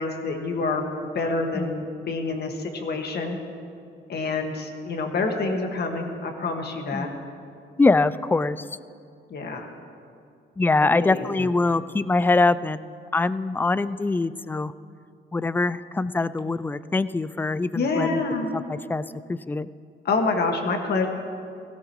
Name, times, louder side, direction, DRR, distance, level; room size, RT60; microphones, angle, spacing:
voice 1, 0.0-3.4 4.1-7.1 9.3-9.7 10.8-11.5 17.7-18.5 20.1-21.1, left 3 dB, 55° left, 3 dB, 1.8 m, -27 dB
voice 2, 7.8-8.6 10.6-14.7 15.3-18.2 18.5-19.0 19.3-19.7, left 3 dB, 10° left, 16 dB, 0.3 m, -23 dB
16.5 x 16.5 x 3.1 m, 2.4 s
cardioid pair, 90°, 20 cm